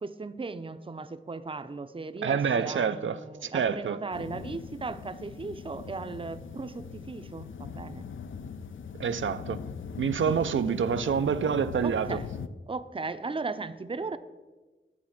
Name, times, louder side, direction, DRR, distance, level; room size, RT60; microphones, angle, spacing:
voice 1, 0.0-8.1 10.3-10.8 11.8-12.3 12.7-14.2, right 3 dB, 25° right, 0.5 m, -37 dB
voice 2, 2.2-4.0 9.0-9.6 10.0-12.2, right 7 dB, 75° right, 0.4 m, -27 dB
sound 1, 4.1-12.5, left 6 dB, 80° left, 0.5 m, -40 dB
10.5 x 4.2 x 7.2 m
wide cardioid pair, 55°, 20 cm